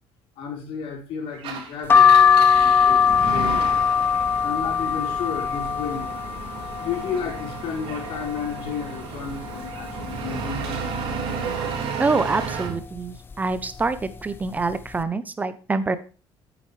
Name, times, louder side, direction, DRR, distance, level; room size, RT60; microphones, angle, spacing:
voice 1, 0.4-3.6 4.2-6.2 6.8-10.9, left 7 dB, 70° left, 0 dB, 4.6 m, -33 dB
Engine, 1.3-12.8, right 5 dB, 65° right, 3.7 m, -33 dB
sound 1, 1.9-7.6 8.0-8.8 9.2-9.3 9.5-10.6 11.1-11.4 12.2-12.5 13.3-13.6 13.8-14.0, left 7 dB, 25° left, 0.6 m, -20 dB
voice 2, 12.0-16.0, right 3 dB, 15° right, 13 dB, 0.6 m, -25 dB
11.0 x 8.9 x 3.2 m, 0.35 s
cardioid pair, 165°, 10 cm